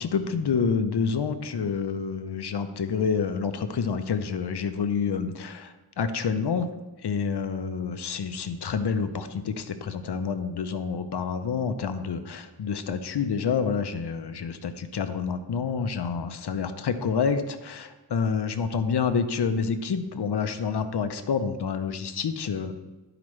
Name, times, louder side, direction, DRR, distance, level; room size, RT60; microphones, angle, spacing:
voice 1, 0.0-6.7 7.0-22.8, left 6 dB, 70° left, 9 dB, 0.7 m, -28 dB
12.0 x 4.9 x 3.2 m, 1.1 s
wide cardioid pair, 65°, 41 cm